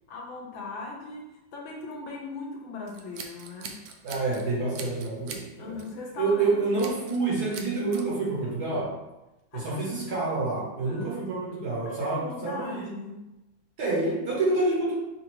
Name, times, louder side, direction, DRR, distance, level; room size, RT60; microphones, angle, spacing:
voice 1, 0.1-3.8 5.6-6.8 9.5-10.0 10.8-11.4 11.8-13.2, left 3 dB, 70° left, -1 dB, 1.5 m, -39 dB
Scissors, 2.9-4.4 4.7-5.5 5.8-6.0 6.8-7.2 7.5-8.0, right 5 dB, 75° right, 1.1 m, -41 dB
voice 2, 4.0-5.7 6.2-8.9 9.5-12.9 13.8-14.9, right 3 dB, 55° right, -4 dB, 1.3 m, -28 dB
5.9 x 2.5 x 3.1 m, 0.99 s
omnidirectional pair, 2.4 m